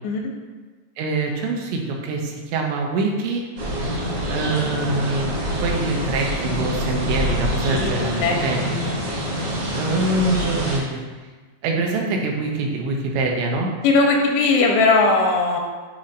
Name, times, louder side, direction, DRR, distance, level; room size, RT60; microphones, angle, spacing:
voice 1, 1.0-3.4 4.3-5.3 5.6-8.6 9.7-11.0 11.6-13.7, right 2 dB, 85° right, 0 dB, 3.1 m, -24 dB
sound 1, 3.6-10.8, equal, 65° right, 1.4 m, -25 dB
voice 2, 7.6-9.0 13.8-15.6, left 3 dB, 90° left, 1 dB, 3.0 m, -19 dB
9.6 x 4.2 x 2.5 m, 1.4 s
omnidirectional pair, 5.0 m